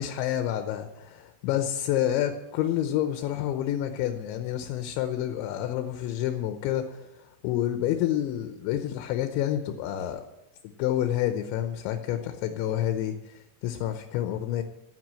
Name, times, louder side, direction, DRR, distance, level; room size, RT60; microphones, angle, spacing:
voice 1, 0.0-10.2 10.8-14.6, left 11 dB, 75° left, 7 dB, 2.9 m, -29 dB
12.0 x 9.2 x 7.6 m, 0.91 s
omnidirectional pair, 5.7 m